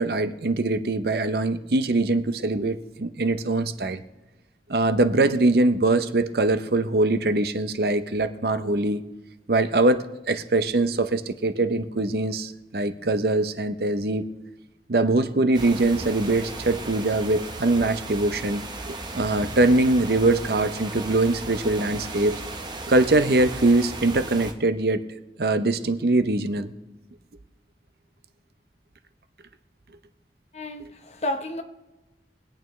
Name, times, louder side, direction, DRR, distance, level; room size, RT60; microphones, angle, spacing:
voice 1, 0.0-4.0 4.7-9.0 9.5-14.3 14.9-22.4 22.9-25.0 25.4-26.7, right 2 dB, 60° right, 0.7 m, -22 dB
sound 1, 15.5-24.5, right 2 dB, 25° right, 0.9 m, -36 dB
voice 2, 30.5-31.6, left 1 dB, 40° left, 0.9 m, -31 dB
23.5 x 9.0 x 3.2 m
head